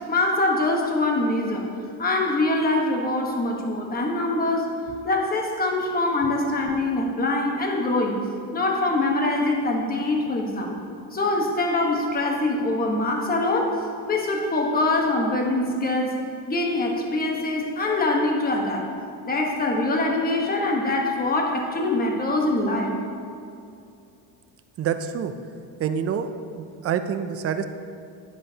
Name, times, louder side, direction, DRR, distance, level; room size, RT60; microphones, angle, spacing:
voice 1, 0.0-1.7 2.0-4.8 5.0-8.3 8.5-10.8 11.1-16.2 16.5-18.9 19.3-22.9, left 2 dB, 20° left, 1 dB, 1.2 m, -24 dB
voice 2, 24.8-25.3 25.8-27.6, right 7 dB, 35° right, 9 dB, 0.5 m, -27 dB
10.5 x 10.0 x 2.8 m, 2.6 s
cardioid pair, 140°, 43 cm